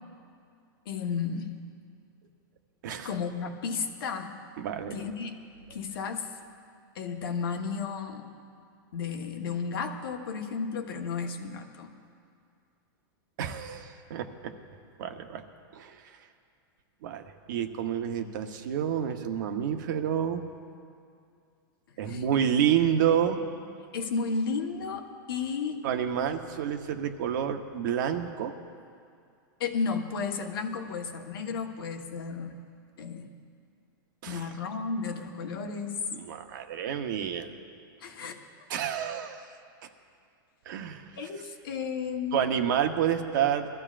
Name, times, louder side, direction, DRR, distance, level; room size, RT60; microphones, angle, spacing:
voice 1, 0.9-1.5 3.0-4.4 4.9-5.3 5.7-6.3 6.9-8.2 8.9-11.9 22.1-22.4 23.9-25.8 29.6-32.5 33.0-33.3 34.3-36.0 38.0-38.4 41.2-42.5, left 5 dB, 80° left, 3 dB, 1.4 m, -33 dB
voice 2, 4.6-4.9 13.4-14.5 15.0-15.4 15.7-16.0 17.0-20.4 22.0-23.4 25.8-28.5 34.2-34.5 36.1-37.5 38.7-39.4 40.7-41.0 42.3-43.7, right 9 dB, 60° right, 6 dB, 1.0 m, -29 dB
22.5 x 14.5 x 2.5 m, 2.4 s
supercardioid pair, 165°, 12 cm